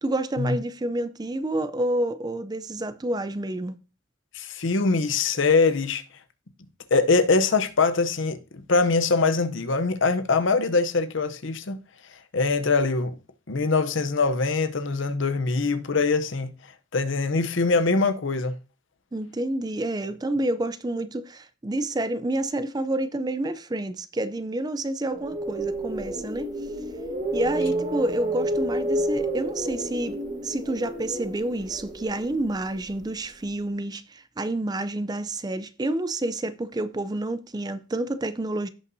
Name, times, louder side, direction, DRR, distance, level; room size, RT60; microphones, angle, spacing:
voice 1, 0.0-3.8 19.1-26.5 27.3-38.7, right 1 dB, 20° right, 0.4 m, -29 dB
voice 2, 4.3-6.0 6.9-8.4 8.7-11.8 12.3-13.2 13.5-16.5 16.9-18.6, left 4 dB, 60° left, 0.7 m, -23 dB
sound 1, 25.1-33.2, right 1 dB, 35° right, 1.6 m, -30 dB
16.5 x 5.5 x 2.7 m
head